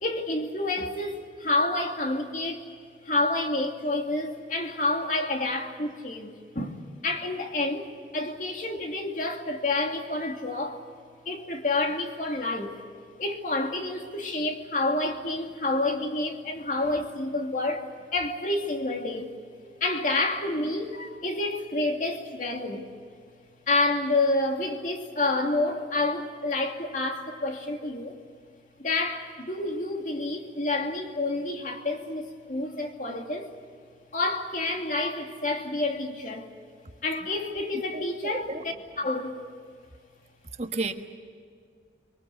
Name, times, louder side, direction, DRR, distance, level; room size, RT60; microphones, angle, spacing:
voice 1, 0.0-2.6 3.0-10.8 11.3-12.8 13.2-19.4 19.8-22.9 23.7-28.2 28.8-33.5 34.1-36.5 37.0-38.5 39.0-39.4, left 2 dB, 45° left, 2.6 m, -29 dB
voice 2, 37.9-38.6 40.6-40.9, right 3 dB, 40° right, 1.4 m, -32 dB
24.5 x 23.0 x 8.3 m
head